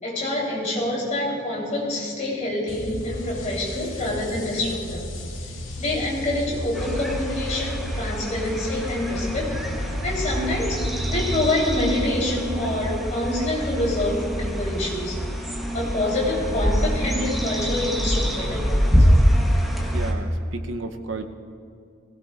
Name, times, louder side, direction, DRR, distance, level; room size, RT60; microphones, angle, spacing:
voice 1, 0.0-5.1 5.8-9.6 10.0-10.8 11.1-15.2 15.7-19.2, left 1 dB, 40° left, -4 dB, 3.8 m, -26 dB
Deep Atmospheric Wave Crash, 2.7-11.6, left 1 dB, 80° left, 2.1 m, -34 dB
sound 1, 6.7-20.1, equal, ahead, 1.3 m, -25 dB
voice 2, 19.9-21.2, right 2 dB, 80° right, 6 dB, 0.8 m, -32 dB
20.5 x 16.5 x 2.5 m, 2.3 s
head